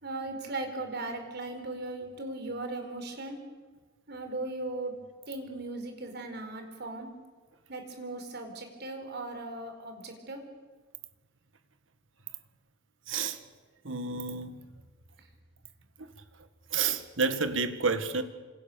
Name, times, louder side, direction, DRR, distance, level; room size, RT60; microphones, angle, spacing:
voice 1, 0.0-3.4 4.1-4.9 5.3-7.1 7.7-10.4, right 2 dB, 55° right, 4.5 m, -38 dB
voice 2, 13.1-13.4 13.8-14.6 16.7-18.2, right 4 dB, 75° right, 1.8 m, -29 dB
28.0 x 26.5 x 7.0 m
head